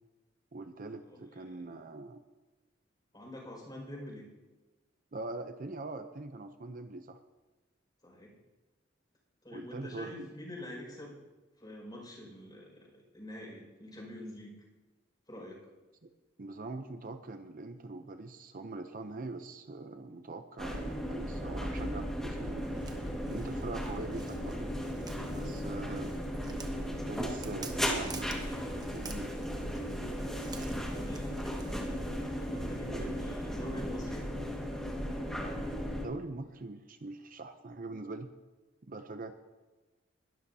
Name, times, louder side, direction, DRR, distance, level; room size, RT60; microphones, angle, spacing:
voice 1, 0.5-2.2 5.1-7.2 9.5-10.3 16.0-16.1 16.4-22.9 23.3-24.7 25.3-26.1 27.1-29.3 32.9-33.0 35.9-38.3 38.8-39.3, right 2 dB, 50° right, 8 dB, 0.7 m, -42 dB
voice 2, 1.1-1.6 3.1-4.2 8.0-8.3 9.4-11.2 11.6-14.5 15.3-15.6 30.9-31.4 32.4-34.2, left 1 dB, 25° left, -1 dB, 5.7 m, -46 dB
sound 1, 20.6-36.1, equal, 5° left, 1.8 m, -36 dB
Walk footsteps, 22.6-32.2, right 3 dB, 20° right, 1.0 m, -49 dB
21.0 x 13.0 x 2.8 m, 1.2 s
head